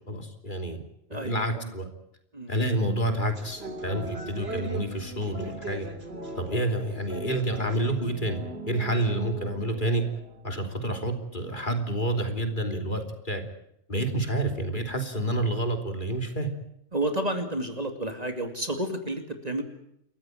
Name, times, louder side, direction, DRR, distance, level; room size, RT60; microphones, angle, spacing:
voice 1, 0.1-0.8 1.1-1.9 2.5-5.9 6.4-10.0 10.4-13.4 13.9-16.5, right 1 dB, 40° left, 5 dB, 3.3 m, -29 dB
voice 2, 1.1-1.7 2.3-2.5 16.9-19.6, right 1 dB, 30° right, 5 dB, 2.6 m, -31 dB
sound 1, 3.3-11.3, right 2 dB, 55° right, 3.1 m, -40 dB
29.5 x 14.5 x 9.1 m, 0.77 s
omnidirectional pair, 1.3 m